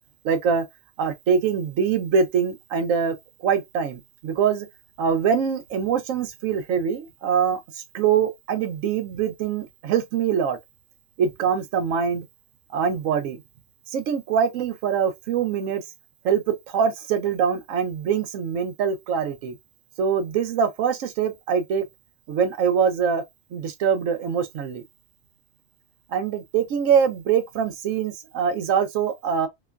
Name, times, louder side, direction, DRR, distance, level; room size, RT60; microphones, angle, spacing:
voice 1, 0.2-0.6 1.0-3.1 3.4-4.7 5.0-10.6 11.2-12.2 12.7-13.4 13.9-15.8 16.2-19.5 20.0-21.8 22.3-23.2 23.5-24.8 26.1-29.5, right 7 dB, 85° right, 1.0 m, -23 dB
2.9 x 2.2 x 2.2 m
omnidirectional pair, 1.3 m